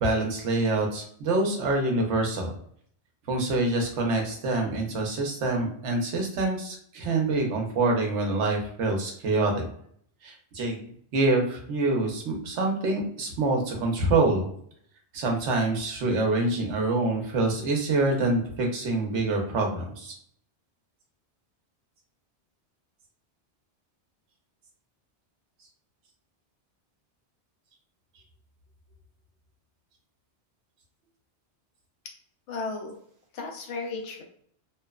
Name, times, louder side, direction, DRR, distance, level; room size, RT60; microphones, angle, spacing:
voice 1, 0.0-2.5 3.3-9.6 10.2-14.5 15.1-20.2, right 2 dB, 85° right, 2 dB, 1.0 m, -26 dB
voice 2, 32.5-32.9 33.3-34.2, left 3 dB, 85° left, 2 dB, 0.9 m, -34 dB
2.8 x 2.0 x 2.3 m, 0.63 s
omnidirectional pair, 1.2 m